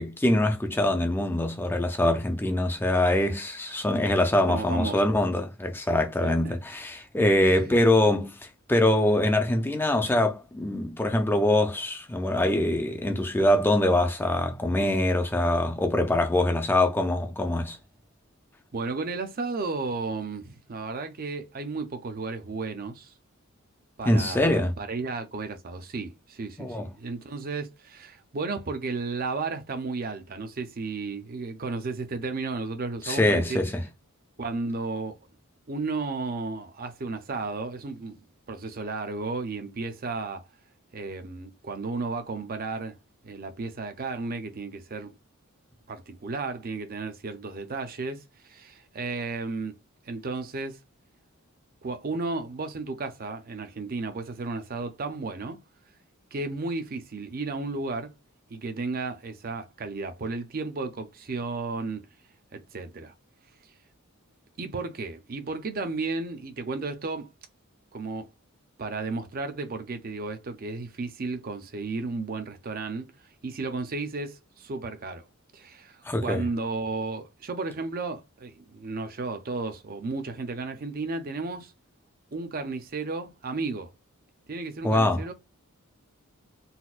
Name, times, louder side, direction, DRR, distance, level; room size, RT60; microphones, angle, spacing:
voice 1, 0.0-8.4 8.7-17.8 24.1-24.7 26.6-26.9 33.0-33.8 76.1-76.4 84.8-85.2, left 1 dB, 10° left, 0.4 m, -24 dB
voice 2, 4.5-5.0 6.2-6.6 7.4-7.7 18.7-23.1 24.0-33.6 34.4-35.2 35.7-40.5 40.9-43.0 43.2-45.1 45.9-49.8 50.0-50.8 51.8-55.6 56.3-58.1 58.5-62.1 62.5-63.1 64.6-67.3 67.9-68.3 68.8-73.1 73.4-75.3 75.5-81.7 82.3-83.9 84.5-85.3, right 3 dB, 40° right, 0.6 m, -33 dB
4.1 x 2.2 x 2.4 m
head